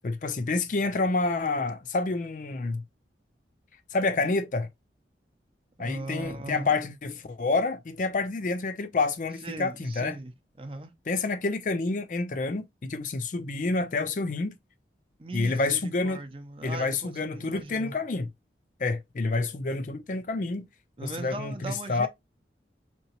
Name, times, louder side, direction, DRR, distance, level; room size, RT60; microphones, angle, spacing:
voice 1, 0.0-2.8 3.9-4.7 5.8-10.2 11.1-14.6 15.3-16.2 16.6-18.3 18.8-20.7 21.0-22.1, left 3 dB, 45° left, 0.4 m, -28 dB
voice 2, 5.8-6.7 9.4-10.3 10.6-10.9 15.2-17.9 21.0-22.1, right 2 dB, 30° right, 0.5 m, -39 dB
3.6 x 3.0 x 2.8 m
head